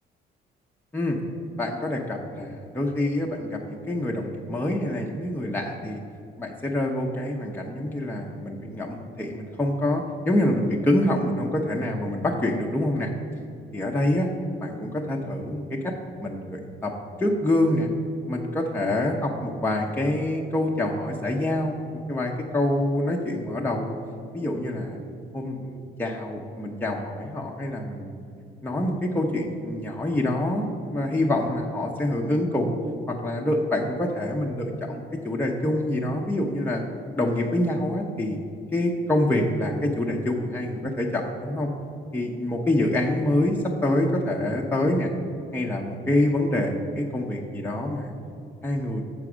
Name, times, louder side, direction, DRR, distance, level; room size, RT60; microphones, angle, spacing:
voice 1, 1.6-6.0 6.4-13.1 13.7-14.3 14.6-15.9 16.2-16.9 17.2-17.9 18.3-21.8 22.1-23.9 24.3-25.0 25.3-28.2 28.6-32.7 33.1-36.8 37.2-38.4 38.7-41.7 42.1-45.1 45.5-48.1 48.6-49.0, left 1 dB, 10° left, -1 dB, 0.7 m, -26 dB
6.9 x 4.8 x 6.1 m, 2.4 s
cardioid pair, 90°, 20 cm